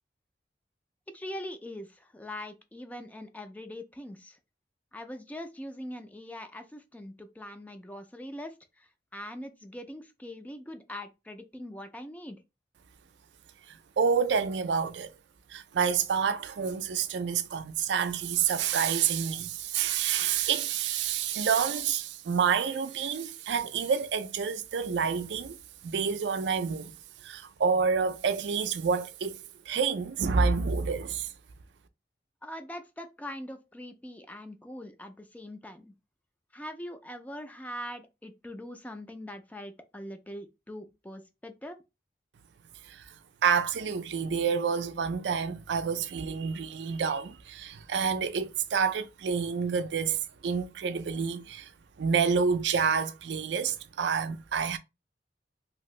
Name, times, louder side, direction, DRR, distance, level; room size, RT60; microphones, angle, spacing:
voice 1, 1.1-4.4 4.9-12.4 32.4-35.9 36.5-41.8, left 1 dB, 10° left, 0.4 m, -42 dB
voice 2, 14.0-15.1 15.5-25.6 25.8-26.9 27.2-29.4 29.7-31.3 42.9-43.0 43.4-51.7 52.0-54.8, right 6 dB, 80° right, 0.4 m, -28 dB
2.8 x 2.6 x 3.1 m
head